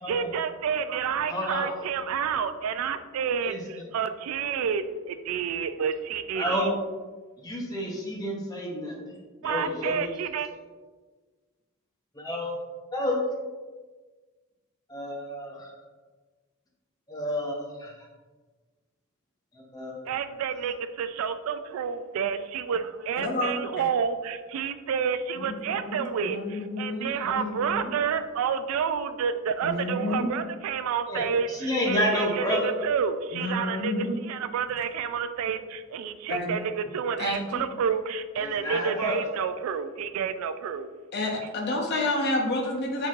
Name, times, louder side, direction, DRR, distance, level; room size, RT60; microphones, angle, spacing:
voice 1, 0.1-6.7 9.4-10.5 20.1-40.9, right 7 dB, 85° right, 12 dB, 0.3 m, -29 dB
voice 2, 1.3-1.7 3.4-3.6 6.3-6.7 7.4-10.1 12.1-12.6 12.9-13.2 14.9-15.7 17.1-17.9 19.5-20.1 27.1-27.2 31.1-32.7 38.4-39.2, left 1 dB, 20° left, -2 dB, 0.8 m, -30 dB
voice 3, 23.2-23.6 25.4-27.9 29.6-30.3 33.3-34.2 36.3-36.5 37.2-37.7 41.1-43.1, left 2 dB, 50° left, 1 dB, 0.7 m, -30 dB
4.5 x 3.9 x 2.4 m, 1.4 s
head